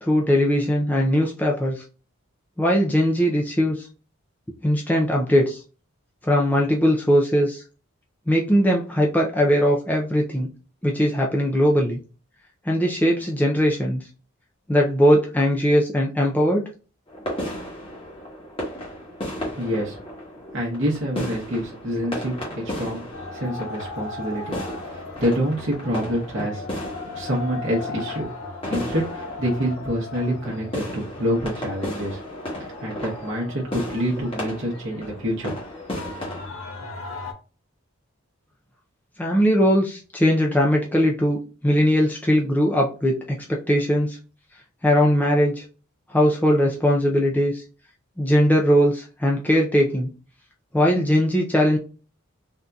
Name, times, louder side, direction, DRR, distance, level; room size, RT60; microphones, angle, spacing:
voice 1, 0.0-1.8 2.6-3.9 4.6-5.6 6.2-7.6 8.3-10.5 10.8-12.0 12.7-14.1 14.7-16.6 39.2-44.2 44.8-45.6 46.1-47.6 48.2-50.1 50.7-51.8, equal, 10° left, -1 dB, 0.3 m, -20 dB
sound 1, 17.1-36.5, equal, 25° left, 1.1 m, -35 dB
voice 2, 19.5-20.2 20.5-23.0 23.3-24.6 24.9-26.7 27.1-28.3 28.7-32.2 32.5-35.6, equal, 55° right, -3 dB, 0.8 m, -27 dB
sound 2, 23.1-37.3, left 3 dB, 75° left, 0.7 m, -38 dB
3.6 x 2.7 x 2.3 m, 0.36 s
head